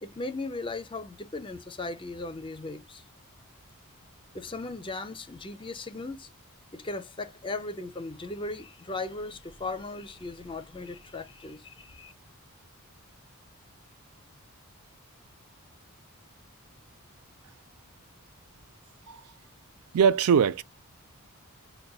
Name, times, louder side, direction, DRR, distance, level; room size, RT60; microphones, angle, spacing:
voice 1, 0.0-3.0 4.3-6.3 6.7-12.1, left 2 dB, 25° left, 0.5 m, -37 dB
voice 2, 19.9-20.6, right 7 dB, 80° right, 0.4 m, -21 dB
6.5 x 2.2 x 2.3 m
head